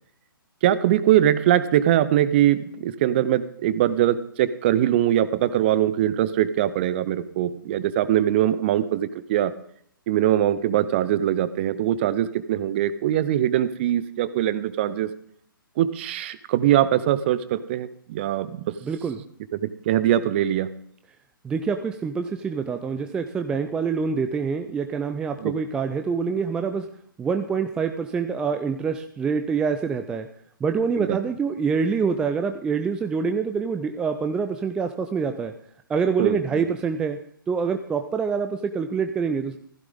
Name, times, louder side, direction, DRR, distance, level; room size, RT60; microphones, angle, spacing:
voice 1, 0.6-9.5 10.1-15.1 15.8-18.7 19.5-20.7 25.4-25.5 31.0-31.2 36.2-36.6, right 12 dB, 30° right, 15 dB, 0.8 m, -22 dB
voice 2, 18.8-19.2 21.4-26.9 27.2-30.3 30.6-35.5 35.9-37.2 37.5-39.6, right 5 dB, 5° right, 7 dB, 0.4 m, -26 dB
15.5 x 15.0 x 3.7 m, 0.64 s
figure-of-eight pair, 130°, 12 cm